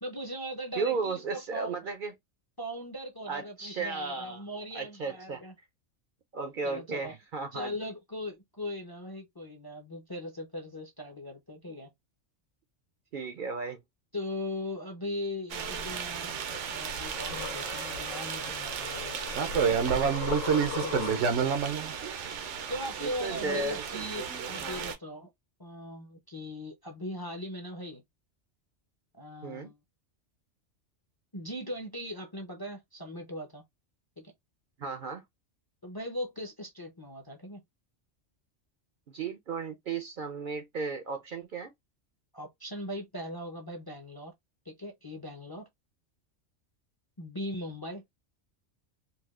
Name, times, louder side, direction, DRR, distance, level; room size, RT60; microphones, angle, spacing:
voice 1, 0.0-1.8 2.6-5.5 6.6-7.1 7.5-11.9 14.1-16.3 16.7-19.2 20.8-21.2 22.7-25.3 25.6-28.0 29.2-29.8 31.3-33.6 34.2-34.3 35.8-37.6 42.3-44.3 44.7-45.7 47.2-48.0, left 1 dB, 25° left, 0.5 m, -39 dB
voice 2, 0.7-2.1 3.3-4.4 4.7-5.4 6.3-7.7 13.1-13.8 23.0-23.8 24.6-24.9 29.4-29.7 34.8-35.2 39.1-41.7, right 4 dB, 55° right, 0.6 m, -35 dB
sound 1, 15.5-24.9, right 6 dB, 75° right, 1.0 m, -31 dB
sample-space-aliens-worms-bug, 16.5-21.6, left 7 dB, 85° left, 1.0 m, -40 dB
4.1 x 2.3 x 2.4 m
omnidirectional pair, 1.2 m